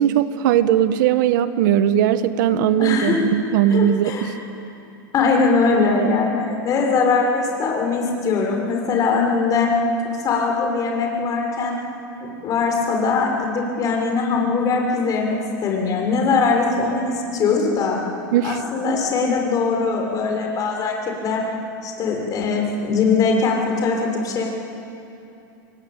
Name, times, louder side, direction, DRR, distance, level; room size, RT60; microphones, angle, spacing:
voice 1, 0.0-4.3 18.3-18.6, right 10 dB, 65° right, 11 dB, 1.4 m, -19 dB
voice 2, 2.8-3.2 3.7-4.3 5.1-9.7 10.2-11.8 12.2-17.0 17.3-18.0 18.4-21.4 21.8-24.5, left 4 dB, 35° left, 1 dB, 6.4 m, -21 dB
28.5 x 23.0 x 9.0 m, 2.7 s
supercardioid pair, 135°, 11 cm